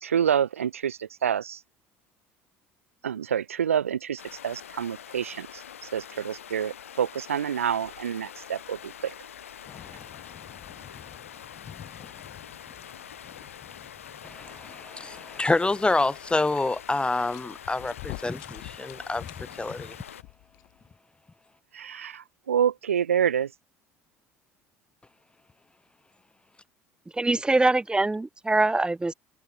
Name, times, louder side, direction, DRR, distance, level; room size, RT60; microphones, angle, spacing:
voice 1, 0.0-1.6 3.0-5.6 5.9-9.1 21.7-23.5, right 8 dB, 90° right, 0.4 m, -27 dB
Stream, 4.2-20.2, left 9 dB, 85° left, 1.6 m, -45 dB
sound 1, 8.6-20.9, left 28 dB, 65° left, 7.3 m, -50 dB
Thunder / Rain, 9.7-20.0, left 9 dB, 45° left, 7.1 m, -51 dB
voice 2, 14.2-19.2 19.6-20.0, left 2 dB, 15° left, 0.5 m, -27 dB
voice 3, 27.1-29.1, right 2 dB, 10° right, 1.3 m, -23 dB
hypercardioid pair, 65°, 7 cm